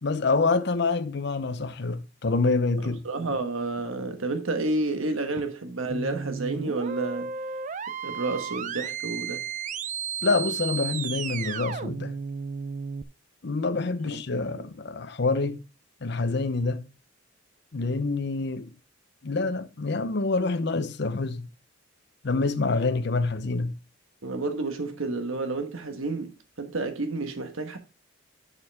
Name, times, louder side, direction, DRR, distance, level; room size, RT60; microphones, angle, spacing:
voice 1, 0.0-3.0 10.2-12.1 13.4-15.6 16.0-16.9 17.7-18.7 19.2-21.5 22.2-23.8, left 3 dB, 55° left, 0.7 m, -26 dB
voice 2, 2.8-7.3 8.0-9.5 14.1-14.2 14.5-14.6 24.2-27.8, right 3 dB, 85° right, 1.3 m, -30 dB
sound 1, 5.9-13.0, right 6 dB, 40° right, 0.4 m, -33 dB
6.9 x 6.7 x 3.5 m
head